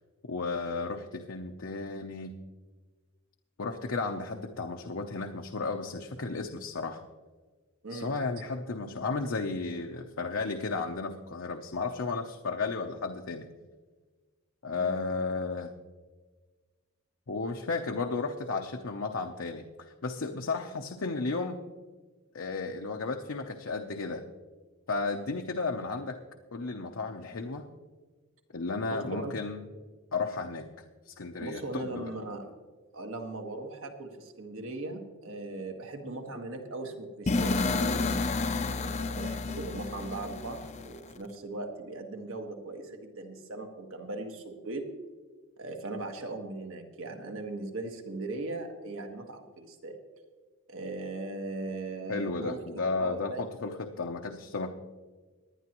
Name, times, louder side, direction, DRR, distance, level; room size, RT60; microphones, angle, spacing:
voice 1, 0.2-2.4 3.6-7.0 7.9-13.5 14.6-15.7 17.3-21.6 22.3-24.2 24.9-26.2 26.5-27.6 28.5-29.7 30.1-30.7 31.1-32.1 52.1-54.7, left 3 dB, 70° left, 3 dB, 0.7 m, -33 dB
voice 2, 14.8-15.1 28.9-29.3 31.4-32.6 32.9-38.3 38.7-44.9 45.6-50.0 50.7-52.6 53.0-53.4, right 2 dB, 70° right, 4 dB, 1.6 m, -39 dB
sound 1, 37.3-41.2, left 3 dB, 30° left, 0.5 m, -30 dB
19.0 x 11.0 x 3.0 m, 1.4 s
head